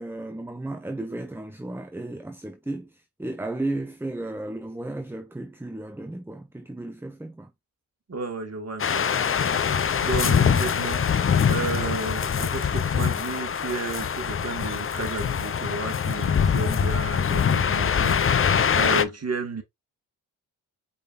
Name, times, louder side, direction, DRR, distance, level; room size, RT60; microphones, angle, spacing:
voice 1, 0.0-7.5, right 2 dB, 5° right, 0.8 m, -34 dB
voice 2, 8.1-9.1 10.0-19.6, right 3 dB, 35° right, 1.9 m, -32 dB
sound 1, 8.8-19.0, left 7 dB, 30° left, 0.6 m, -23 dB
5.0 x 4.1 x 2.5 m
supercardioid pair, 45°, 45 cm